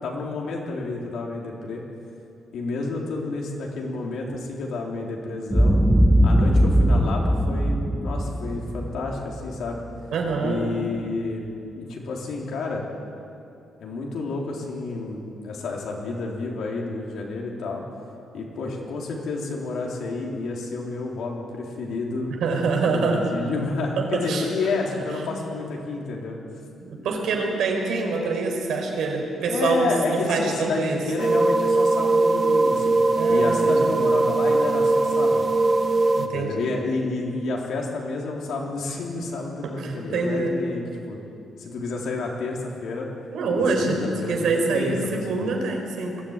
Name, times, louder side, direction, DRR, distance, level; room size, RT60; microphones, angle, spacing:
voice 1, 0.0-1.8 2.5-5.8 6.2-9.8 10.4-12.8 13.8-17.8 18.3-22.3 22.8-26.4 29.5-33.0 33.3-35.5 36.2-41.2 41.6-43.1 43.6-44.4 44.7-45.0 45.3-45.5, left 3 dB, 70° left, -1 dB, 3.7 m, -30 dB
Boom, 5.5-9.8, equal, ahead, 0.9 m, -20 dB
voice 2, 10.1-10.6 22.4-23.3 24.0-24.5 25.0-25.2 26.8-31.0 33.2-33.9 36.2-36.7 39.6-40.6 43.3-44.0 44.3-46.2, right 4 dB, 75° right, 2 dB, 4.3 m, -25 dB
sound 1, 31.2-36.3, right 2 dB, 25° right, 1.3 m, -20 dB
21.5 x 14.0 x 9.0 m, 2.6 s
cardioid pair, 145°, 0 cm